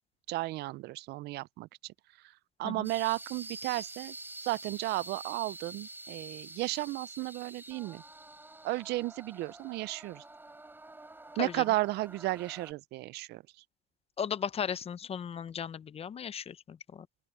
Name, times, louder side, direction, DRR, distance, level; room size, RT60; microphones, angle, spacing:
voice 1, 0.3-1.7 2.6-4.1 4.4-8.0 8.6-10.2 11.4-13.4, right 19 dB, 80° right, 0.5 m, -33 dB
sound 1, 2.8-12.7, right 2 dB, 10° right, 4.0 m, -47 dB
voice 2, 14.2-17.1, left 7 dB, 35° left, 0.7 m, -36 dB
open air
cardioid pair, 110°, 17 cm